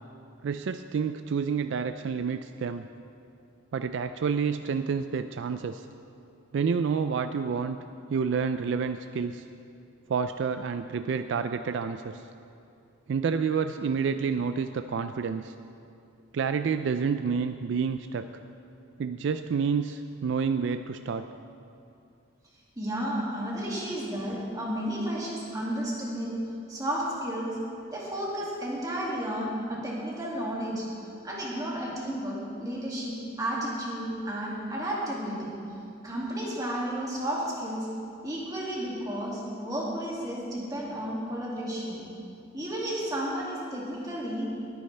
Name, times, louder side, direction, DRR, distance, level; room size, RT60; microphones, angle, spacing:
voice 1, 0.4-2.9 3.7-5.9 6.5-7.8 8.1-9.5 10.1-12.2 13.1-15.5 16.3-18.3 19.0-21.3, right 6 dB, 60° right, 9 dB, 0.3 m, -29 dB
voice 2, 22.8-26.3 26.7-27.6 27.9-30.9 31.2-35.6 36.0-37.9 38.2-42.0 42.5-44.5, right 1 dB, 20° right, -5 dB, 2.2 m, -32 dB
20.5 x 9.6 x 3.3 m, 2.6 s
head